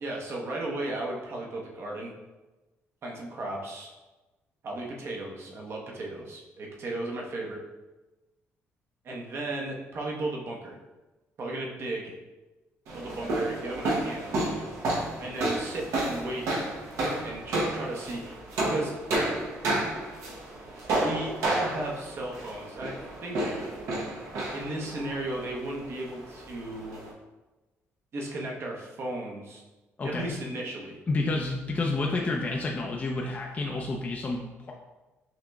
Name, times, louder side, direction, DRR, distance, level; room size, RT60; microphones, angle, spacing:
voice 1, 0.0-2.1 3.0-3.9 4.6-7.6 9.0-10.8 11.4-12.1 12.9-14.6 15.2-16.7 17.2-19.0 21.0-23.7 24.5-27.0 28.1-29.6 30.0-31.0, right 2 dB, 55° right, -1 dB, 0.9 m, -35 dB
sound 1, 12.9-27.1, right 1 dB, 80° right, 0.9 m, -31 dB
voice 2, 30.0-30.3 31.1-34.7, left 3 dB, 30° left, -1 dB, 0.5 m, -29 dB
5.7 x 2.9 x 2.3 m, 1.1 s
cardioid pair, 95°, 5 cm